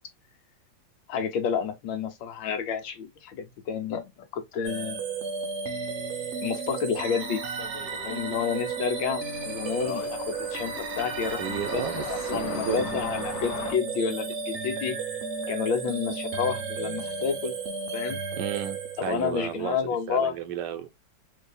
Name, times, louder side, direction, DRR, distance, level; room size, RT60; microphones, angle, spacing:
voice 1, 1.1-5.0 6.4-7.4 8.0-15.0 15.5-17.6 17.9-18.2 19.0-20.3, left 7 dB, 85° left, 1.6 m, -30 dB
sound 1, 4.6-19.4, right 4 dB, 55° right, 0.8 m, -33 dB
sound 2, 6.9-13.7, left 7 dB, 65° left, 1.3 m, -40 dB
voice 2, 11.4-13.1 18.3-20.9, right 10 dB, 75° right, 1.2 m, -33 dB
4.7 x 2.7 x 2.2 m
omnidirectional pair, 2.0 m